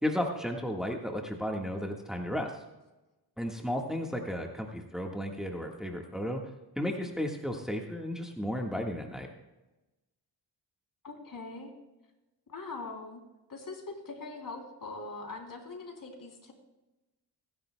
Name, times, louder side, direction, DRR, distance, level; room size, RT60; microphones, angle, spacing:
voice 1, 0.0-2.5 3.4-6.4 6.8-9.3, equal, ahead, 1 dB, 1.6 m, -33 dB
voice 2, 11.0-11.7 12.5-13.2 13.5-16.5, left 3 dB, 55° left, 2 dB, 3.3 m, -42 dB
23.0 x 11.0 x 2.3 m, 1.0 s
cardioid pair, 75°, 40 cm